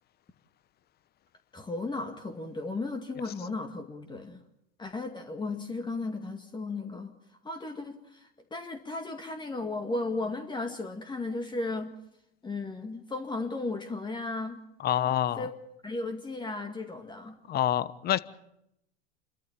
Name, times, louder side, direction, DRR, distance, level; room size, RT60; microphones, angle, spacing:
voice 1, 1.5-4.4 4.8-7.1 7.4-11.9 12.4-14.6 15.4-15.5 15.8-17.4, left 3 dB, 15° left, 5 dB, 2.0 m, -35 dB
voice 2, 14.8-15.5 17.5-18.2, left 11 dB, 30° left, 17 dB, 1.1 m, -27 dB
29.5 x 13.5 x 8.9 m, 0.83 s
hypercardioid pair, 110°, 31 cm